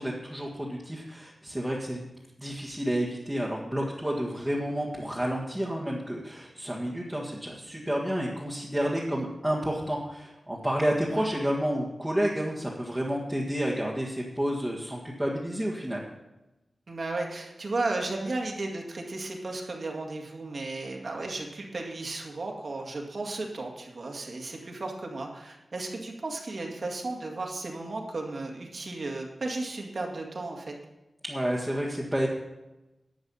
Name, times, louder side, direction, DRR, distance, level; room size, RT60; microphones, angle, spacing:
voice 1, 0.0-2.0 2.4-16.0 31.2-32.3, equal, 10° right, -3 dB, 1.6 m, -30 dB
voice 2, 8.9-9.2 11.1-11.2 16.9-30.7, right 2 dB, 55° right, 1 dB, 2.0 m, -34 dB
11.5 x 7.9 x 5.6 m, 0.99 s
wide cardioid pair, 120°, 0 cm